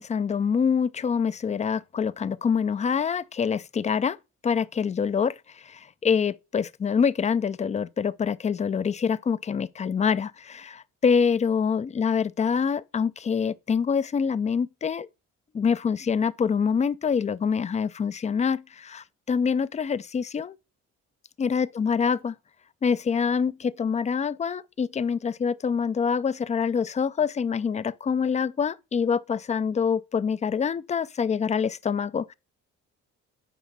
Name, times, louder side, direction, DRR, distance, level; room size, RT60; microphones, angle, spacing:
voice 1, 0.0-4.2 4.4-15.1 15.5-20.6 21.4-22.3 22.8-32.3, left 6 dB, 25° left, 0.4 m, -25 dB
9.2 x 5.1 x 4.1 m
cardioid pair, 90°, 30 cm